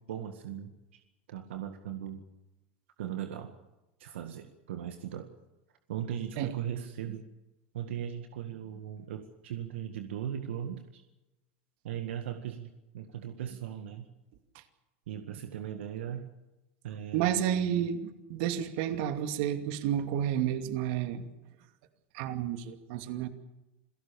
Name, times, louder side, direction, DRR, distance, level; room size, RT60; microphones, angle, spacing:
voice 1, 0.1-1.0 1.3-2.3 3.0-3.5 4.0-5.3 5.9-7.2 7.7-11.0 11.8-14.1 15.1-16.2 16.8-17.9, right 9 dB, 80° right, 7 dB, 1.9 m, -38 dB
voice 2, 17.1-21.2 22.1-23.3, right 10 dB, 65° right, 9 dB, 2.5 m, -31 dB
27.5 x 18.0 x 7.1 m, 1.0 s
hypercardioid pair, 105°, 6 cm